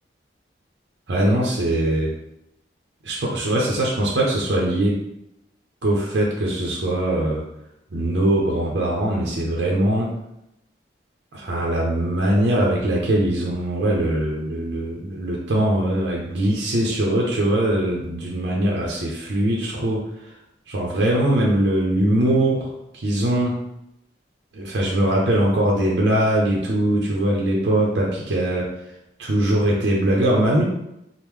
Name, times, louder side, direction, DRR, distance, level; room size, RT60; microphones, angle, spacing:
voice 1, 1.1-2.1 3.0-5.0 5.8-7.4 7.9-10.1 11.3-20.3 20.7-22.7 22.9-23.5 24.5-28.7 29.2-30.6, right 1 dB, 85° right, -3 dB, 0.6 m, -21 dB
3.5 x 2.0 x 3.0 m, 0.83 s
head